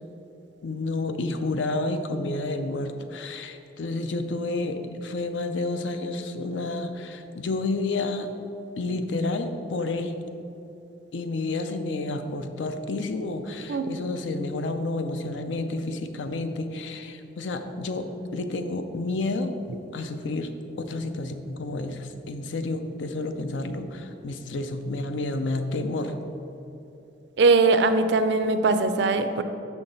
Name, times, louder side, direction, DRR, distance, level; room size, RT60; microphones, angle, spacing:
voice 1, 0.6-8.3 8.8-10.1 11.1-19.5 19.9-26.1, left 2 dB, 75° left, 8 dB, 0.5 m, -30 dB
voice 2, 27.4-29.4, right 3 dB, 65° right, 9 dB, 0.4 m, -20 dB
6.1 x 5.8 x 3.9 m, 2.9 s
head